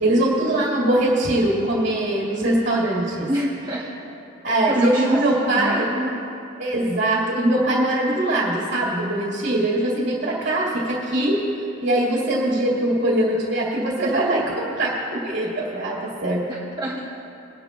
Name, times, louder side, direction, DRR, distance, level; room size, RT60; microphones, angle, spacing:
voice 1, 0.0-3.3 4.4-5.9 6.6-11.4 11.8-16.4, right 1 dB, 55° right, -5 dB, 2.1 m, -22 dB
voice 2, 3.3-3.9 4.7-6.2 16.5-17.1, right 1 dB, 20° right, -6 dB, 1.1 m, -27 dB
21.5 x 10.5 x 2.4 m, 2.7 s
head